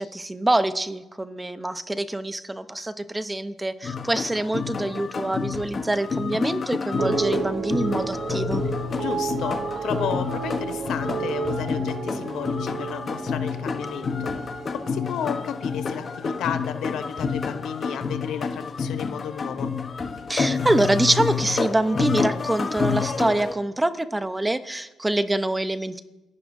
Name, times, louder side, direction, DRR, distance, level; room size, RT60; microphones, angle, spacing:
voice 1, 0.0-8.6 20.3-26.0, right 1 dB, 15° right, 11 dB, 0.8 m, -25 dB
sound 1, 3.8-23.5, left 5 dB, 40° left, 1.0 m, -29 dB
sound 2, 5.5-6.3 7.8-7.9 8.5-9.2 11.4-12.2 13.9-14.0 14.3-15.1 16.8-16.9 17.1-17.9 20.0-20.8 22.7-23.5, left 2 dB, 25° left, 6.5 m, -49 dB
sound 3, 7.0-17.3 17.6-18.2, right 6 dB, 50° right, 1.0 m, -32 dB
voice 2, 9.0-14.5 14.7-19.7, left 8 dB, 75° left, 10 dB, 0.8 m, -33 dB
28.5 x 11.0 x 2.7 m, 1.0 s
cardioid pair, 90°, 0 cm